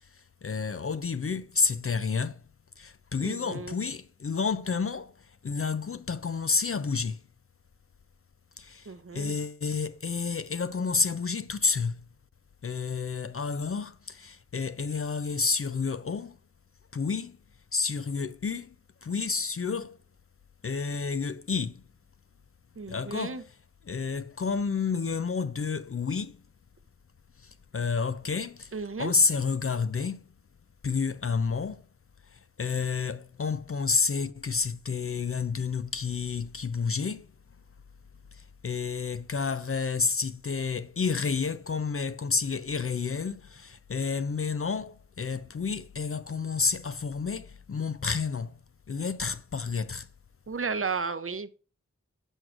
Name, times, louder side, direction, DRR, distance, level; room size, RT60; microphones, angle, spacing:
voice 1, 0.0-2.4 2.8-7.2 8.6-12.1 12.6-16.4 16.9-17.4 17.7-18.8 19.0-20.0 20.6-21.8 22.9-23.4 23.9-26.4 27.4-30.2 30.8-31.9 32.3-37.3 38.3-48.6 48.9-50.1, left 5 dB, 50° left, 0.4 m, -30 dB
voice 2, 3.2-3.7 8.9-9.3 22.8-23.4 28.7-29.1 50.5-51.5, right 5 dB, 45° right, 0.7 m, -33 dB
11.0 x 6.2 x 2.5 m
wide cardioid pair, 50°, 30 cm